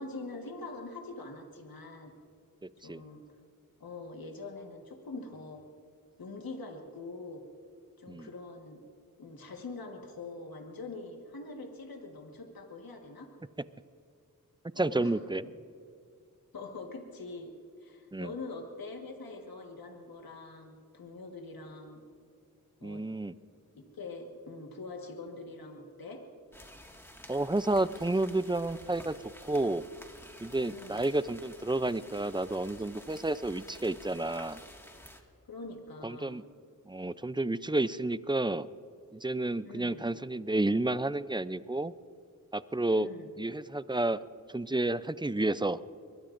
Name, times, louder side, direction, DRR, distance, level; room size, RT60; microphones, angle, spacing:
voice 1, 0.0-2.1 2.8-3.2 3.8-5.6 6.2-7.4 8.0-8.8 9.2-13.3 14.7-15.5 16.5-17.5 17.8-22.0 22.8-23.0 23.7-26.2 30.7-31.0 35.4-36.4 39.6-40.1 42.9-43.3, left 3 dB, 85° left, 3 dB, 1.6 m, -44 dB
voice 2, 14.8-15.5 18.1-18.3 22.8-23.3 27.3-29.1 29.4-29.8 30.4-34.6 36.0-36.4 36.9-38.7 39.1-41.9 42.5-43.1 43.4-44.2 44.5-45.8, right 2 dB, 15° right, 15 dB, 0.5 m, -30 dB
sound 1, 26.5-35.2, equal, 5° left, 1.9 m, -51 dB
24.5 x 22.0 x 2.6 m, 2.3 s
cardioid pair, 55°, 35 cm